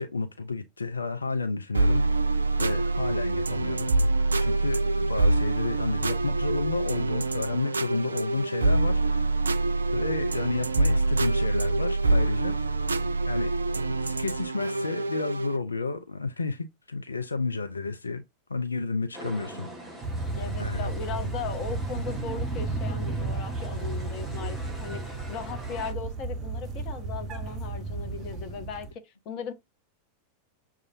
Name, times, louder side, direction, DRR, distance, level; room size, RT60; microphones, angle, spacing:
voice 1, 0.0-2.0 2.6-3.9 4.4-9.2 9.9-12.6 13.3-13.5 14.0-18.2 18.5-19.7 20.6-20.9, left 3 dB, 75° left, 0.4 m, -31 dB
sound 1, 1.7-15.6, right 2 dB, 75° right, 0.3 m, -25 dB
sound 2, 19.1-25.9, right 1 dB, 5° right, 1.6 m, -43 dB
sound 3, 20.0-28.9, right 3 dB, 30° right, 0.8 m, -33 dB
voice 2, 20.3-29.5, left 6 dB, 40° left, 0.9 m, -38 dB
6.4 x 2.4 x 2.6 m
figure-of-eight pair, 90°, 0 cm